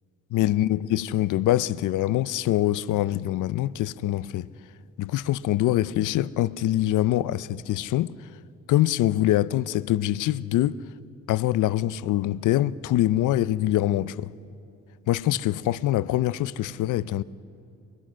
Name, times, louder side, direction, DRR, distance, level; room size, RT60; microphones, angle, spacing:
voice 1, 0.3-4.5 5.0-8.1 8.7-10.8 11.3-14.3 15.1-17.2, left 14 dB, 90° left, 0.6 m, -24 dB
28.5 x 23.0 x 6.3 m
cardioid pair, 120°, 30 cm